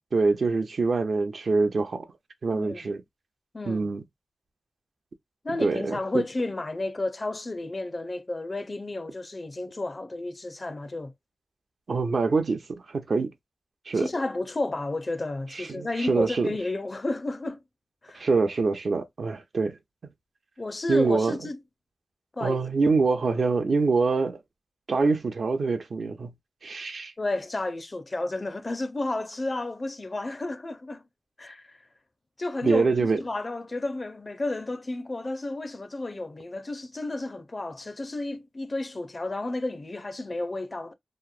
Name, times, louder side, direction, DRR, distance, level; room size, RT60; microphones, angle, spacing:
voice 1, 0.1-2.1 2.4-3.0 3.7-4.0 5.6-6.2 11.9-13.3 13.9-14.1 15.5-16.6 18.1-19.8 20.9-21.4 22.4-24.4 24.9-26.3 26.6-27.1 32.6-33.2, right 4 dB, 70° right, 0.5 m, -25 dB
voice 2, 2.5-2.9 3.5-3.9 5.4-11.1 13.9-17.6 18.0-18.3 20.6-21.6 22.3-22.6 27.2-31.0 31.4-31.8 32.4-40.9, left 2 dB, 40° left, 0.5 m, -32 dB
2.9 x 2.0 x 2.3 m
cardioid pair, 55°, 0 cm